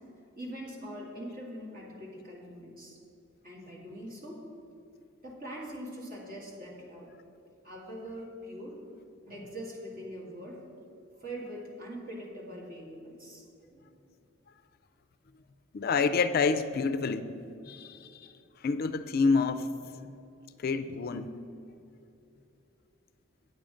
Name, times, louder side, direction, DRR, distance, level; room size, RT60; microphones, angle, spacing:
voice 1, 0.4-3.0 3.4-4.5 5.2-7.1 7.6-8.8 9.3-10.6 11.2-13.8, equal, 45° right, -2 dB, 2.1 m, -42 dB
voice 2, 15.7-17.3 17.7-18.3 18.6-19.7 20.6-21.3, left 4 dB, 50° left, 11 dB, 0.4 m, -28 dB
9.1 x 7.6 x 5.0 m, 2.7 s
head